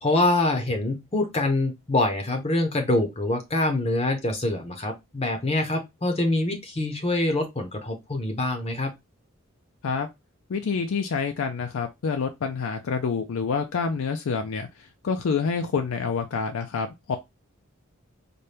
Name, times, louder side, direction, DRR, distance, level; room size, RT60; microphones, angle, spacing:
voice 1, 0.0-8.9, left 2 dB, 30° left, 0.6 m, -25 dB
voice 2, 10.5-17.2, left 5 dB, 75° left, 0.4 m, -27 dB
4.1 x 2.2 x 3.2 m
head